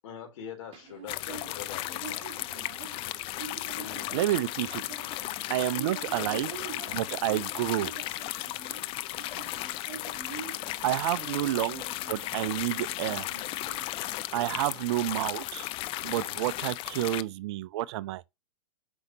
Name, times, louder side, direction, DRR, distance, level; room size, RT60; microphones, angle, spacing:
voice 1, 0.0-2.4 3.8-4.4 6.2-6.5 11.3-11.5, left 8 dB, 60° left, 3.6 m, -44 dB
sound 1, 0.7-15.1, right 6 dB, 30° right, 2.4 m, -46 dB
sound 2, 1.1-17.2, left 16 dB, 30° left, 0.4 m, -35 dB
voice 2, 4.1-4.8 5.5-6.5 6.9-7.9 10.8-13.3 14.3-15.7 16.0-18.2, right 15 dB, 50° right, 0.5 m, -30 dB
7.9 x 5.4 x 2.8 m
hypercardioid pair, 110°, 18 cm